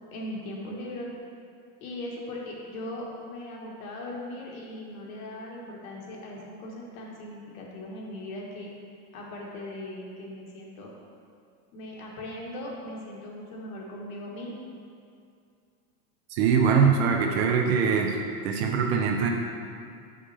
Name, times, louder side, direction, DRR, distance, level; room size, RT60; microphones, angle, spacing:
voice 1, 0.1-1.1 1.8-8.7 9.1-10.9 11.7-14.6, left 1 dB, 65° left, -3 dB, 1.4 m, -39 dB
voice 2, 16.3-18.2 18.4-19.3, right 6 dB, 45° right, 2 dB, 0.5 m, -22 dB
5.6 x 5.2 x 3.3 m, 2.4 s
supercardioid pair, 155°, 46 cm